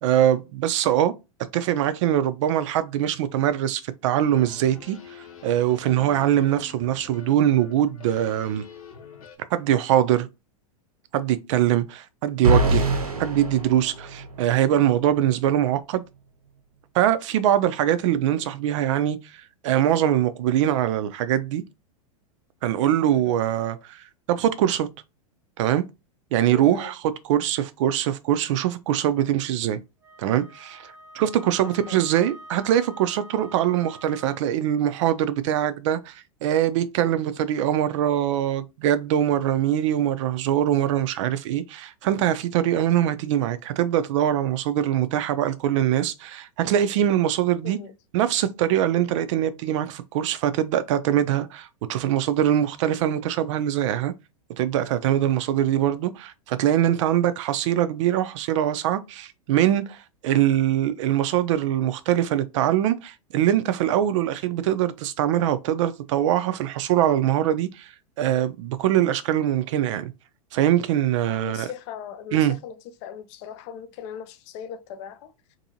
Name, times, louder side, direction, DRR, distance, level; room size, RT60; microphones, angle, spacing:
voice 1, 0.0-1.1 1.5-8.6 9.5-10.3 11.1-12.8 13.2-16.0 16.9-21.6 22.6-24.9 25.6-25.8 26.3-27.0 27.2-29.8 30.2-47.8 48.1-54.1 54.6-67.9 68.2-70.1 70.5-71.7 72.3-72.5, right 11 dB, 55° right, 0.4 m, -23 dB
sound 1, 4.1-9.4, left 7 dB, 75° left, 1.0 m, -45 dB
voice 2, 5.9-6.2 17.4-17.7 23.1-23.4 26.5-26.9 31.6-32.0 47.6-47.9 71.4-72.8 73.0-75.6, left 8 dB, 50° left, 0.5 m, -39 dB
sound 2, 12.4-14.6, right 1 dB, 90° right, 0.7 m, -23 dB
Wind instrument woodwind instrument, 30.0-34.6, right 1 dB, 15° right, 0.6 m, -46 dB
2.6 x 2.6 x 2.7 m
hypercardioid pair, 100°, 19 cm